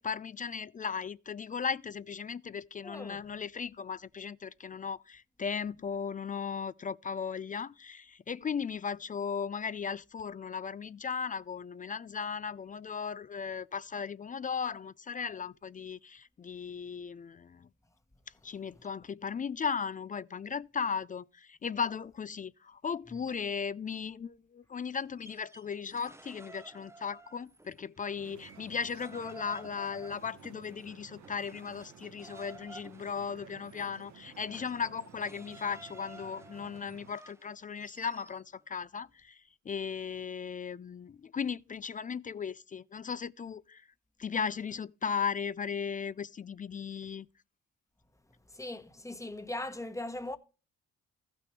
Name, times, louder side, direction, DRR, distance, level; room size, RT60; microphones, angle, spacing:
voice 1, 0.0-17.7 18.4-39.4 39.7-43.8 44.2-47.3, left 6 dB, 30° left, 0.4 m, -37 dB
voice 2, 2.8-3.2 48.5-50.4, left 1 dB, 10° left, 1.1 m, -39 dB
sound 1, 25.1-27.8 28.1-38.4, right 2 dB, 10° right, 0.7 m, -54 dB
sound 2, 28.1-37.1, right 7 dB, 70° right, 1.3 m, -54 dB
15.0 x 6.0 x 3.2 m
cardioid pair, 90°, 30 cm